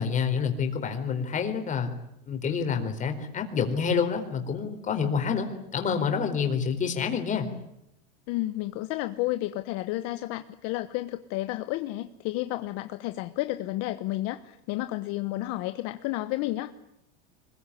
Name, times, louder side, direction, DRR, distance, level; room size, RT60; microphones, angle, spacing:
voice 1, 0.0-1.9 2.2-7.5, left 6 dB, 25° left, 6 dB, 4.3 m, -28 dB
voice 2, 8.3-16.7, left 17 dB, 50° left, 10 dB, 1.2 m, -31 dB
25.0 x 21.5 x 10.0 m, 0.81 s
supercardioid pair, 145°, 30 cm